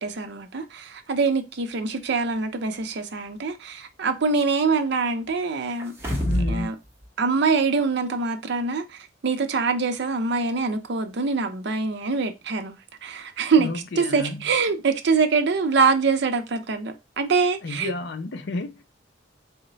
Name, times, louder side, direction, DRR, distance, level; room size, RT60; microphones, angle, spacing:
voice 1, 0.0-5.9 6.5-6.7 7.2-13.7 14.0-17.9, right 4 dB, 65° right, 0.5 m, -24 dB
sound 1, 5.8-6.7 7.0-7.1, left 1 dB, 15° right, 0.8 m, -25 dB
voice 2, 6.2-6.8 13.6-14.5 17.6-18.8, left 2 dB, 65° left, 0.5 m, -31 dB
3.9 x 2.1 x 3.8 m
head